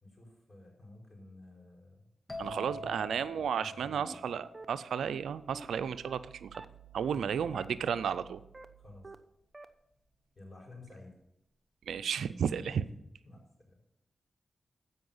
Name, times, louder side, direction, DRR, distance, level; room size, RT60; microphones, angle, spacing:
voice 1, 0.0-2.1 2.4-4.2 7.1-7.7 8.8-9.1 10.3-11.2 12.6-12.8 13.2-13.8, left 2 dB, 40° left, 0 dB, 4.5 m, -52 dB
sound 1, 2.3-5.9, equal, 15° left, 2.5 m, -46 dB
voice 2, 2.4-6.6 6.9-8.4 11.9-12.8, right 7 dB, 85° right, 15 dB, 0.4 m, -33 dB
sound 2, 3.6-3.7 4.0-4.2 4.5-4.7 5.0-5.2 5.5-5.7 6.0-6.2 6.5-6.7 7.0-7.2 7.5-7.7 8.0-8.2 8.5-8.7 9.0-9.2 9.5-9.7, right 3 dB, 35° right, 0.8 m, -47 dB
15.0 x 5.5 x 5.5 m, 0.83 s
supercardioid pair, 40°, 0 cm